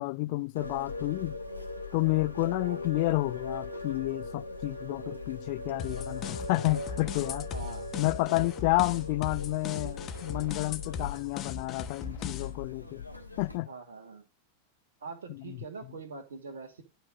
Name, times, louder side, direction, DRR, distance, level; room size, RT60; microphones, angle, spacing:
voice 1, 0.0-1.4 1.9-7.5 8.0-13.1 13.4-13.7 15.5-15.6, left 22 dB, 45° left, 0.4 m, -30 dB
sound 1, 0.6-13.6, left 2 dB, 90° right, 1.8 m, -40 dB
sound 2, 5.8-12.6, left 7 dB, 30° left, 1.3 m, -39 dB
voice 2, 7.5-7.9 13.7-14.3 15.0-16.8, right 4 dB, 65° right, 2.7 m, -43 dB
12.5 x 4.5 x 6.6 m
figure-of-eight pair, 90°, 0 cm